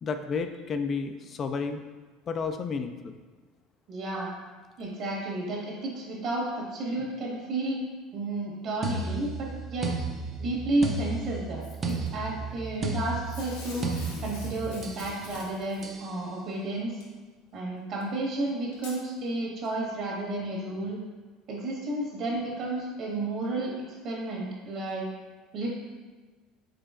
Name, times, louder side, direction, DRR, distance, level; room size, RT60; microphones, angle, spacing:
voice 1, 0.0-1.8 2.3-3.2, left 5 dB, 40° left, 7 dB, 0.3 m, -31 dB
voice 2, 3.9-4.3 4.8-7.8 8.1-9.9 10.4-13.9 14.2-17.0 17.5-21.0 21.5-23.7 24.0-25.1 25.5-25.7, right 2 dB, 55° right, -3 dB, 1.5 m, -32 dB
sound 1, 8.8-15.1 15.8-16.1, right 3 dB, 35° right, 0.6 m, -33 dB
Packing tape duct tape / Tearing, 11.6-12.1 13.3-15.9 17.0-17.1 18.0-18.1 18.7-19.0 19.6-19.7, left 2 dB, 90° left, 0.9 m, -44 dB
5.0 x 3.9 x 2.5 m, 1.3 s
hypercardioid pair, 85°, 0 cm